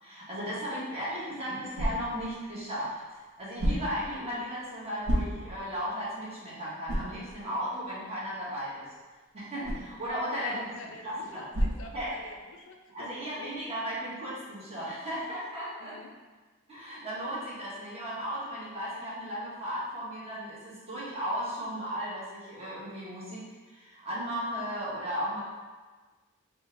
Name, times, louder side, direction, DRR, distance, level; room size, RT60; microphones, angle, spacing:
voice 1, 0.0-8.9 9.3-10.6 11.0-11.5 11.9-12.1 12.9-16.0 16.7-25.4, equal, 30° right, -8 dB, 1.1 m, -35 dB
sound 1, 0.9-12.6, equal, 75° right, 0.8 m, -36 dB
voice 2, 10.3-13.1 13.4-13.6 15.8-16.2, left 3 dB, 65° left, 3 dB, 0.4 m, -47 dB
3.8 x 2.2 x 3.7 m, 1.3 s
head